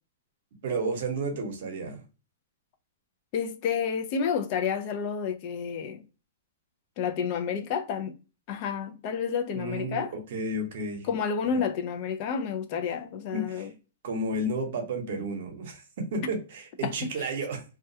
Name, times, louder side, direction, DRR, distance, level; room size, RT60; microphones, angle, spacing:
voice 1, 0.6-2.0 9.5-10.0 10.3-11.1 11.5-11.6 13.3-13.7 14.0-17.6, right 2 dB, 60° right, 0.8 m, -32 dB
voice 2, 3.3-6.0 7.0-8.1 8.5-10.1 11.0-13.7 16.8-17.1, left 6 dB, 40° left, 0.3 m, -30 dB
2.2 x 2.2 x 2.6 m
hypercardioid pair, 145°, 0 cm